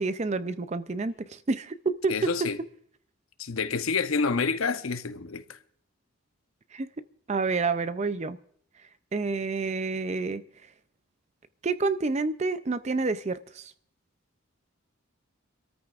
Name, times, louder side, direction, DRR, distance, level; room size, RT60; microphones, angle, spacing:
voice 1, 0.0-2.3 6.7-6.9 7.3-8.4 9.1-10.4 11.6-13.7, right 3 dB, 30° right, 0.5 m, -28 dB
voice 2, 2.1-2.6 3.4-5.6, left 4 dB, 75° left, 0.8 m, -28 dB
25.5 x 13.5 x 2.5 m
head